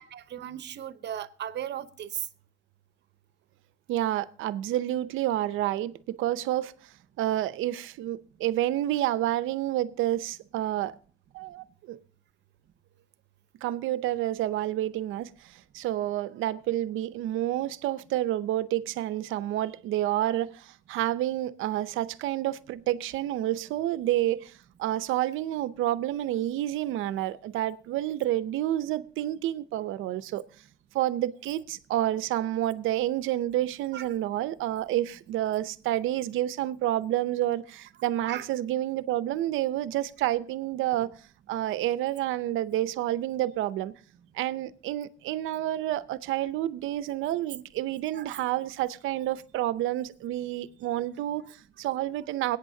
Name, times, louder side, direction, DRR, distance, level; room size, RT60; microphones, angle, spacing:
voice 1, 0.0-2.3 33.9-34.1 38.2-38.5 48.1-48.3, right 10 dB, 60° right, 0.9 m, -36 dB
voice 2, 3.9-6.7 7.2-10.9 11.3-12.0 13.6-24.5 24.8-30.4 30.9-41.1 41.5-43.9 44.3-52.6, right 13 dB, 90° right, 0.6 m, -29 dB
21.0 x 9.0 x 2.7 m
cardioid pair, 90°, 20 cm